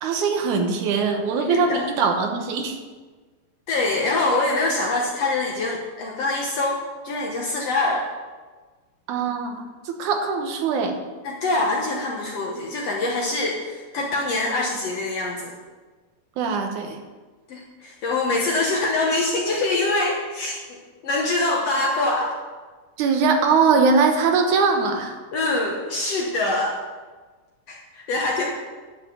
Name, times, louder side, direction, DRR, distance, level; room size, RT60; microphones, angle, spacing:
voice 1, 0.0-2.8 9.1-11.0 16.4-17.0 23.0-25.2, right 5 dB, 70° right, 4 dB, 2.2 m, -21 dB
voice 2, 1.5-1.9 3.7-6.8 7.0-8.0 11.2-15.5 17.5-22.3 25.3-26.8 27.7-28.5, left 2 dB, 65° left, -1 dB, 1.7 m, -24 dB
10.5 x 5.0 x 8.3 m, 1.4 s
omnidirectional pair, 4.1 m